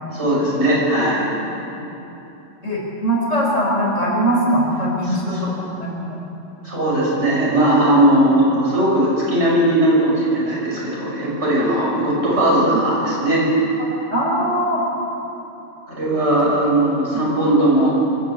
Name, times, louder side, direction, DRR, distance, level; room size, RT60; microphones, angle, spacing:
voice 1, 0.1-1.3 5.1-5.5 6.6-13.8 15.9-17.9, right 1 dB, 65° right, -5 dB, 6.7 m, -18 dB
voice 2, 2.6-6.2 14.1-14.8 17.1-17.3, equal, 85° left, -3 dB, 5.3 m, -21 dB
25.0 x 12.0 x 8.5 m, 3.0 s
omnidirectional pair, 1.3 m